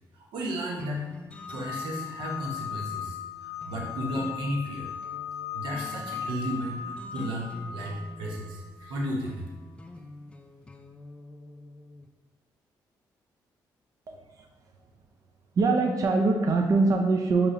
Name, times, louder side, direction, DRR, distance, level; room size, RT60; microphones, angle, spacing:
voice 1, 0.1-1.1 1.5-4.9 5.5-9.4, equal, 90° right, -1 dB, 0.9 m, -34 dB
sound 1, 0.8-12.1, left 2 dB, 15° left, 0.4 m, -48 dB
sound 2, 1.3-9.1, left 8 dB, 40° left, 0.7 m, -38 dB
voice 2, 14.1-14.5 15.6-17.5, right 3 dB, 45° right, 3 dB, 0.4 m, -23 dB
6.3 x 2.8 x 2.6 m, 1.1 s
cardioid pair, 90°, 8 cm